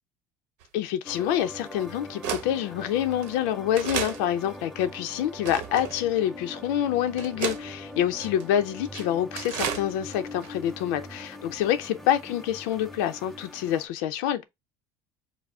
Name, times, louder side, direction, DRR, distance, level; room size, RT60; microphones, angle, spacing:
sound 1, 0.6-0.7 1.4-1.5 2.2-2.5 3.2-3.3 3.7-4.2 4.8-4.9 5.4-6.0 6.6-6.7 7.2-7.6 8.2-8.4 8.8-9.1 9.3-9.8 10.1-10.2 10.4-10.5, right 8 dB, 85° right, 0.9 m, -32 dB
voice 1, 0.7-14.4, left 11 dB, 80° left, 0.5 m, -27 dB
sound 2, 1.1-13.9, left 1 dB, ahead, 0.3 m, -42 dB
4.8 x 2.0 x 4.7 m
cardioid pair, 170°, 10 cm